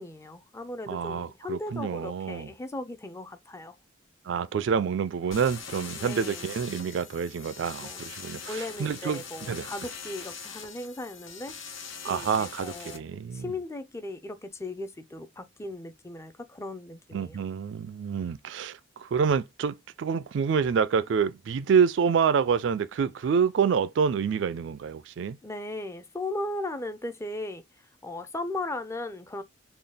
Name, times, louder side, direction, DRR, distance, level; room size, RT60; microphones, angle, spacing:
voice 1, 0.0-3.7 6.0-6.6 7.8-8.0 8.5-11.6 12.1-13.0 13.3-17.4 25.4-27.6 28.0-29.4, left 2 dB, 15° left, 0.5 m, -37 dB
voice 2, 0.9-2.5 4.3-9.7 12.0-13.5 17.1-25.4, right 6 dB, 65° right, 0.3 m, -27 dB
sound 1, 5.3-13.0, left 6 dB, 85° left, 1.0 m, -42 dB
3.9 x 2.3 x 3.3 m
head